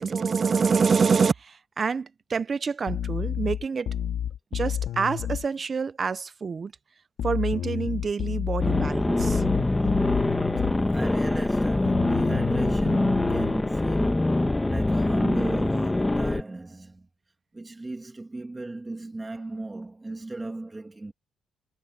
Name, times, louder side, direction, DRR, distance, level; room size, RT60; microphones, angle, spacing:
voice 1, 0.0-3.9 4.5-6.7 7.2-9.4, right 5 dB, 40° right, 0.6 m, -26 dB
sound 1, 2.9-5.4 7.2-10.8 11.9-13.5, left 10 dB, 75° left, 1.9 m, -30 dB
sound 2, 8.6-16.4, left 2 dB, 15° left, 1.1 m, -24 dB
voice 2, 10.8-17.1 17.5-21.1, right 2 dB, 20° right, 2.4 m, -36 dB
cardioid pair, 90°, 0 cm